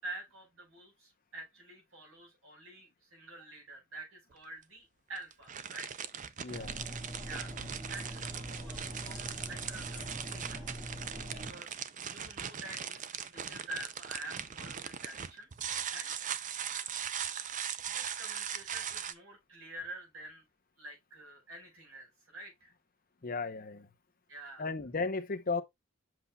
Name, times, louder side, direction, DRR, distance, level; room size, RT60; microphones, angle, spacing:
voice 1, 0.0-5.9 7.2-10.7 11.3-15.6 15.9-16.1 17.8-20.4 20.8-22.7 24.3-24.7, right 2 dB, 70° right, 5.1 m, -48 dB
sound 1, 4.3-4.4 5.1-19.1, right 8 dB, 35° right, 0.5 m, -40 dB
voice 2, 6.4-6.7 23.2-23.9 24.6-25.6, left 4 dB, 40° left, 0.8 m, -35 dB
sound 2, 6.5-11.5, right 1 dB, 20° right, 1.9 m, -43 dB
7.8 x 5.6 x 2.3 m
head